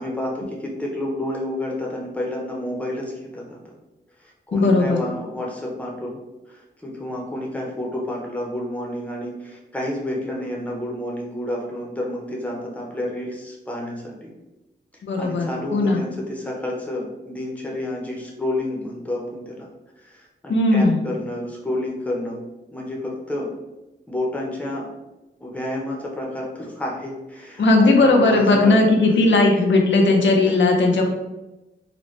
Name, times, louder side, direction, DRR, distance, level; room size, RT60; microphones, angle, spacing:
voice 1, 0.0-3.7 4.2-6.2 6.5-14.3 14.9-19.7 20.0-22.4 22.7-23.5 24.1-24.9 25.4-29.0 30.4-30.6, left 1 dB, 5° left, -2 dB, 0.6 m, -30 dB
voice 2, 4.5-5.0 15.0-16.0 20.5-21.0 27.6-31.1, left 2 dB, 85° left, 1 dB, 0.6 m, -17 dB
3.9 x 2.1 x 3.1 m, 1.0 s
wide cardioid pair, 160°, 19 cm